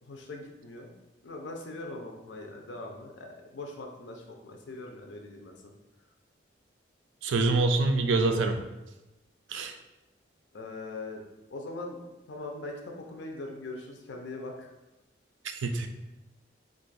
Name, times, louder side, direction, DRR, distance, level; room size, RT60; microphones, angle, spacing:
voice 1, 0.0-0.9 1.2-5.7 10.5-11.2 11.5-12.0 12.3-14.7, left 2 dB, 75° left, 2 dB, 0.5 m, -41 dB
voice 2, 7.2-8.6 9.5-9.7 15.4-15.9, right 3 dB, 85° right, 6 dB, 0.4 m, -26 dB
2.5 x 2.4 x 3.9 m, 1.0 s
head